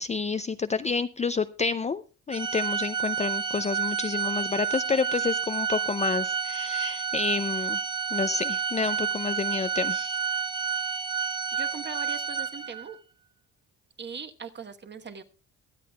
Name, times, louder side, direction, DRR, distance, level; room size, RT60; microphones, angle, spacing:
voice 1, 0.0-7.8 8.1-10.2, left 4 dB, 25° left, 12 dB, 0.4 m, -29 dB
Organ, 2.3-13.0, right 7 dB, 15° right, 0.7 m, -30 dB
voice 2, 11.5-13.0 14.0-15.2, right 5 dB, 35° right, 7 dB, 1.2 m, -40 dB
22.5 x 8.3 x 2.2 m, 0.35 s
cardioid pair, 90°, 30 cm